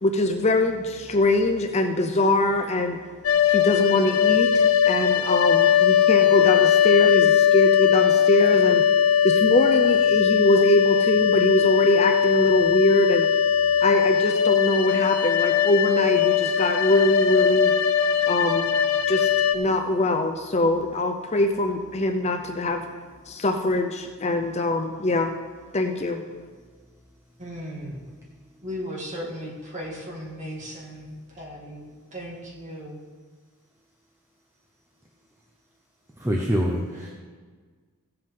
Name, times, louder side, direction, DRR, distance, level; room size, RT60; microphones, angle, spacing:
voice 1, 0.0-3.0 3.5-8.9 9.2-13.3 13.8-17.7 18.3-18.7 19.1-22.9 23.3-25.3 25.7-26.2, left 2 dB, 30° left, 5 dB, 0.5 m, -23 dB
sound 1, 3.2-19.5, left 8 dB, 70° left, 0.7 m, -20 dB
voice 2, 27.4-28.0 28.6-31.9 32.1-33.0 37.0-37.1, equal, 35° right, -3 dB, 2.2 m, -36 dB
voice 3, 36.2-37.1, equal, 10° right, -1 dB, 0.8 m, -25 dB
16.0 x 7.7 x 3.8 m, 1.5 s
head